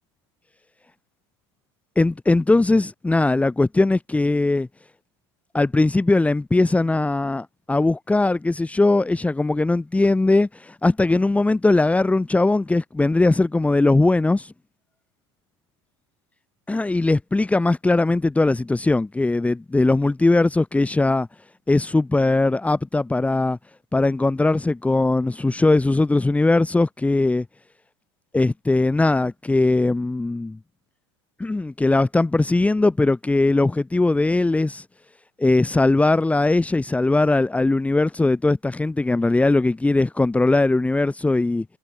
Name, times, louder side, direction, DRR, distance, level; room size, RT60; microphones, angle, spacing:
voice 1, 2.0-4.7 5.5-14.5 16.7-21.3 21.7-23.6 23.9-27.4 28.3-30.6 31.4-34.8 35.4-41.6, left 2 dB, 10° left, 2.9 m, -20 dB
supercardioid pair, 110°, 14 cm